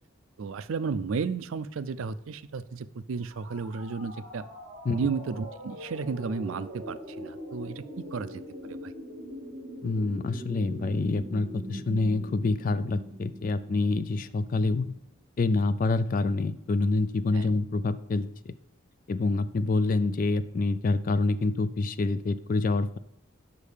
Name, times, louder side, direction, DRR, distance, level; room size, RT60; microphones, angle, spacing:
voice 1, 0.4-4.4 4.9-8.9 17.3-17.5, right 5 dB, 75° right, 14 dB, 0.4 m, -33 dB
sound 1, 3.2-15.0, equal, 35° right, 2.6 m, -42 dB
voice 2, 9.8-14.9 15.4-18.5 19.1-23.0, left 3 dB, 40° left, 15 dB, 0.3 m, -27 dB
5.4 x 5.2 x 6.5 m, 0.78 s
head